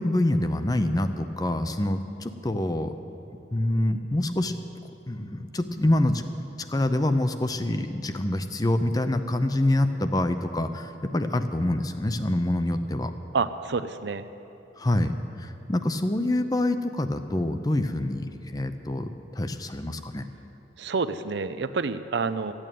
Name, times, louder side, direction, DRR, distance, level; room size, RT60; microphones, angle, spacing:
voice 1, 0.0-3.0 3.5-4.6 5.1-6.2 6.7-13.1 14.8-15.1 15.4-20.3, left 1 dB, 20° left, 9 dB, 0.6 m, -26 dB
voice 2, 13.3-14.3 20.8-22.5, right 4 dB, 65° right, 11 dB, 0.5 m, -28 dB
14.0 x 8.8 x 9.1 m, 2.9 s
head